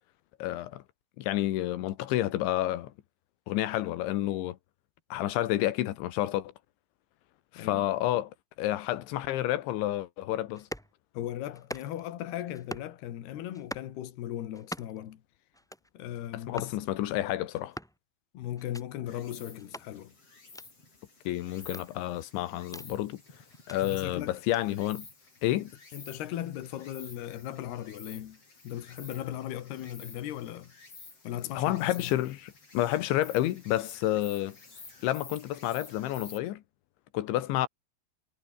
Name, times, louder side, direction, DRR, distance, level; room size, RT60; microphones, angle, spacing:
voice 1, 0.4-0.8 1.2-2.9 3.5-4.6 5.1-6.5 7.5-8.3 8.6-10.7 16.3-17.8 21.3-23.2 23.7-25.1 25.4-25.7 31.6-34.6 35.0-36.6 37.1-37.7, left 14 dB, 85° left, 3.8 m, -30 dB
voice 2, 7.6-7.9 11.1-15.2 15.9-16.8 18.3-20.1 23.8-24.3 25.9-28.4 28.6-30.7 31.2-32.1, left 12 dB, 65° left, 3.8 m, -37 dB
sound 1, 10.5-10.9 11.5-12.1 12.5-12.9 13.5-13.9 14.5-15.1 15.5-15.9 16.5-16.8 17.5-18.0 18.5-18.8 19.6-19.9 20.5-20.7 21.6-22.9 23.5-23.8 24.5-24.6, equal, ahead, 1.5 m, -43 dB
Insect, 19.1-36.4, left 3 dB, 30° left, 8.4 m, -51 dB
omnidirectional pair, 5.2 m